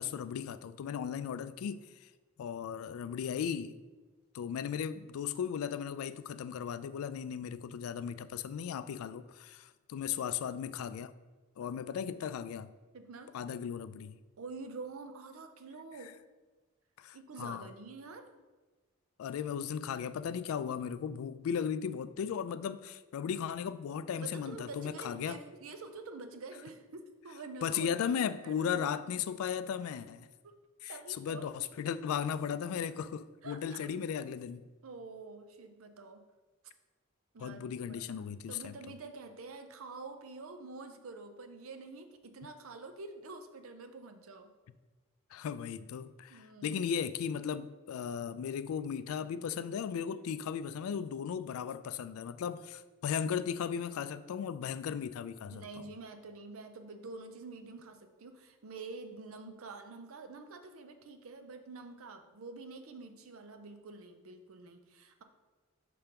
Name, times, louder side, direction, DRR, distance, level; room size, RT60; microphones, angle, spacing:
voice 1, 0.0-2.1 2.4-3.8 4.3-11.1 11.6-12.7 13.3-14.1 17.0-17.7 19.2-25.4 27.6-30.3 30.8-34.7 37.4-38.7 45.3-55.9, left 7 dB, 90° left, 0.3 m, -36 dB
voice 2, 12.9-13.3 14.4-16.2 17.1-18.3 24.2-28.9 30.9-31.5 33.4-33.8 34.8-36.2 37.3-44.5 46.3-46.8 55.5-65.2, right 3 dB, 85° right, 0.6 m, -47 dB
5.7 x 3.3 x 5.2 m
head